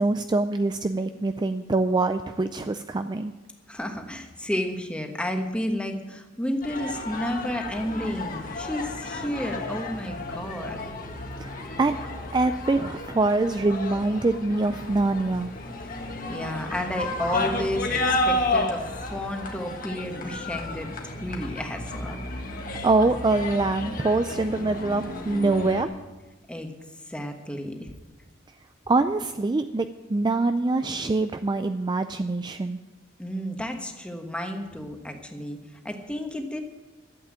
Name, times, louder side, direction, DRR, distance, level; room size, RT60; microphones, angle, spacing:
voice 1, 0.0-3.3 11.4-12.0 12.3-15.5 22.8-25.9 28.9-32.8, right 2 dB, 20° right, 9 dB, 0.4 m, -24 dB
voice 2, 3.7-10.9 15.8-16.0 16.3-18.9 19.1-20.9 21.2-22.2 26.5-26.7 27.1-28.0 33.2-35.6 35.8-36.6, left 1 dB, 5° left, 4 dB, 1.3 m, -32 dB
sound 1, 6.6-25.8, left 2 dB, 45° left, 1.7 m, -32 dB
12.5 x 8.2 x 8.8 m, 1.2 s
head